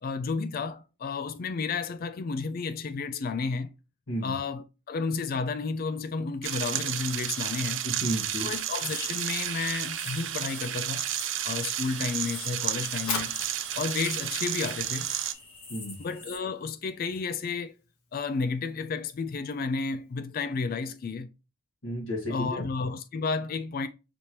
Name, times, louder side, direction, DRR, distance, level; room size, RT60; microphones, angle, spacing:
voice 1, 0.0-3.7 4.2-7.8 8.4-11.0 11.4-13.4 13.8-15.1 16.0-17.7 18.1-21.3 22.3-23.9, left 4 dB, 40° left, 0.3 m, -32 dB
sound 1, 6.4-15.3, right 11 dB, 55° right, 0.4 m, -32 dB
voice 2, 7.8-8.5 15.7-16.0 21.8-22.7, equal, 65° left, 1.5 m, -32 dB
sound 2, 8.0-16.4, left 3 dB, 25° left, 1.2 m, -45 dB
Fire, 12.9-20.1, left 5 dB, 85° left, 1.1 m, -42 dB
5.1 x 2.9 x 3.0 m
head